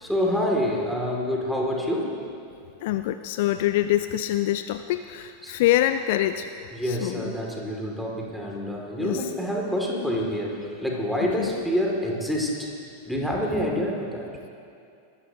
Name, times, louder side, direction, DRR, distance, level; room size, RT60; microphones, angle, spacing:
voice 1, 0.0-2.2 5.4-5.5 6.7-12.7 13.1-14.3, equal, ahead, -2 dB, 2.5 m, -27 dB
voice 2, 2.8-6.5 6.9-7.3 9.0-9.2 11.4-11.6, left 13 dB, 50° left, 10 dB, 0.4 m, -25 dB
21.5 x 14.0 x 2.9 m, 2.5 s
figure-of-eight pair, 90°, 0 cm